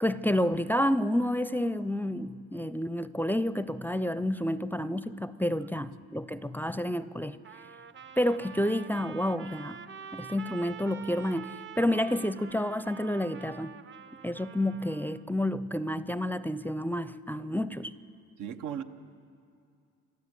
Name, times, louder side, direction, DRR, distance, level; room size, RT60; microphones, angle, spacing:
voice 1, 0.0-7.4 8.2-9.8 10.1-13.7 14.2-17.9, left 1 dB, 5° left, 14 dB, 0.5 m, -29 dB
Trumpet, 7.4-15.3, right 7 dB, 40° right, 0.7 m, -46 dB
voice 2, 18.4-18.8, right 9 dB, 85° right, 8 dB, 1.1 m, -36 dB
28.5 x 12.5 x 8.2 m, 2.4 s
cardioid pair, 90°, 30 cm